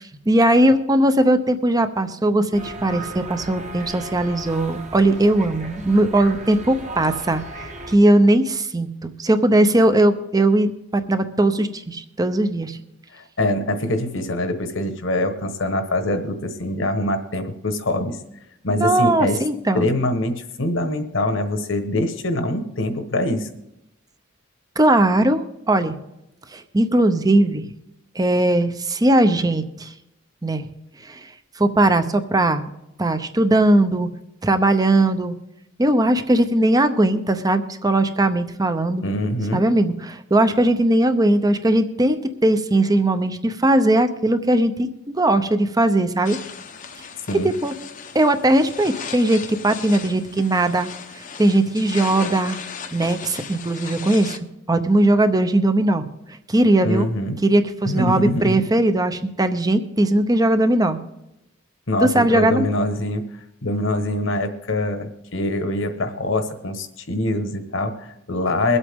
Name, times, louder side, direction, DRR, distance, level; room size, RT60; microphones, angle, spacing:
voice 1, 0.0-12.8 18.8-19.9 24.8-26.0 26.5-27.7 28.2-29.9 30.4-30.7 31.1-31.3 31.6-32.7 33.0-34.1 34.4-35.4 35.8-39.0 39.5-46.4 47.4-47.7 48.1-50.9 51.1-52.6 52.9-54.4 54.7-56.1 56.5-57.1 57.4-61.0 62.0-62.7, right 1 dB, 20° right, 10 dB, 0.7 m, -19 dB
sound 1, 2.5-8.0, right 2 dB, 35° right, 1.3 m, -36 dB
voice 2, 13.1-18.2 18.6-19.4 19.7-23.5 39.0-39.6 47.3-47.5 56.8-57.4 57.8-58.7 61.9-63.2 63.6-68.8, left 1 dB, 65° left, 7 dB, 1.3 m, -24 dB
sound 2, 46.2-54.4, left 6 dB, 40° left, 0.8 m, -36 dB
22.5 x 8.1 x 3.6 m, 0.87 s
head